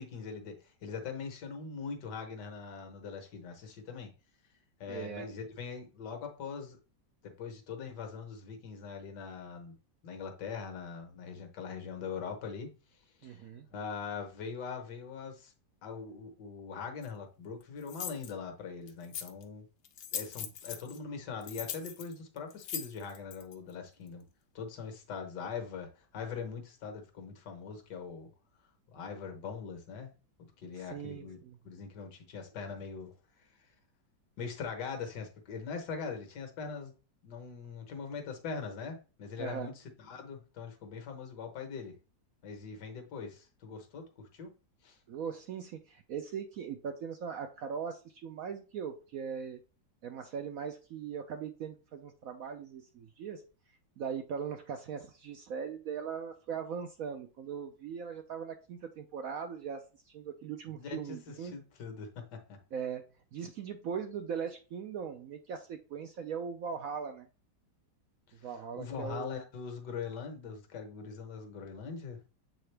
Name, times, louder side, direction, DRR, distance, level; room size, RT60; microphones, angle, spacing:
voice 1, 0.0-4.1 4.8-6.8 7.2-9.7 10.0-12.7 13.2-13.5 13.7-15.5 15.8-19.7 20.1-24.3 24.6-28.3 28.9-30.1 30.6-31.4 31.6-33.1 34.4-36.9 37.2-42.0 42.4-44.5 44.8-45.0 60.7-62.6 68.4-68.5 68.8-72.2, left 5 dB, 70° left, 1.6 m, -42 dB
voice 2, 4.9-5.3 13.2-13.7 30.8-31.6 39.4-39.7 45.1-49.6 50.0-53.4 54.0-61.5 62.7-63.1 63.3-67.3 68.4-69.4, right 7 dB, 70° right, 0.8 m, -40 dB
sound 1, 17.0-17.1 17.9-18.3 18.9-19.4 19.8-21.0 21.4-23.5, left 9 dB, 90° left, 1.5 m, -40 dB
7.7 x 3.7 x 3.3 m
omnidirectional pair, 1.9 m